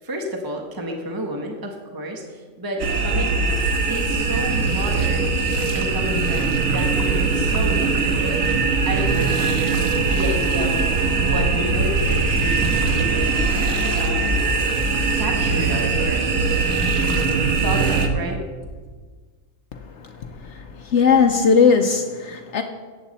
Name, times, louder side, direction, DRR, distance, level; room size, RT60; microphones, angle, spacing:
voice 1, 0.0-3.4 3.8-5.3 5.7-8.4 8.9-9.4 10.0-13.4 14.0-14.5 15.2-16.4 17.4-18.4, right 1 dB, 15° right, 2 dB, 1.1 m, -30 dB
sound 1, 2.8-18.1, right 4 dB, 80° right, 1.5 m, -21 dB
Thump thud, 8.4-9.0 10.4-10.8 12.6-13.3, left 2 dB, 25° left, 0.3 m, -34 dB
voice 2, 20.2-22.6, left 5 dB, 65° left, 6 dB, 0.9 m, -18 dB
15.0 x 8.8 x 4.1 m, 1.5 s
omnidirectional pair, 1.4 m